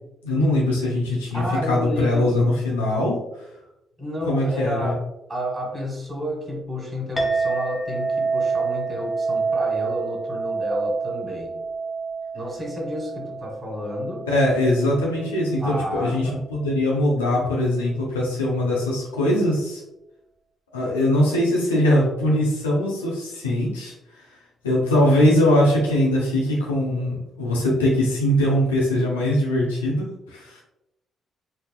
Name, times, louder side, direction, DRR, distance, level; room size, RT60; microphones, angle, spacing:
voice 1, 0.2-3.2 4.3-4.9 14.3-19.8 20.7-23.9 24.6-30.6, left 1 dB, 80° left, -3 dB, 0.7 m, -21 dB
voice 2, 1.3-2.4 4.0-11.6 12.3-14.2 15.6-16.4, equal, 25° right, -1 dB, 1.5 m, -30 dB
Chink clink, 7.2-15.9, right 4 dB, 25° left, 0.8 m, -28 dB
4.1 x 2.8 x 2.2 m, 0.87 s
figure-of-eight pair, 40°, 0 cm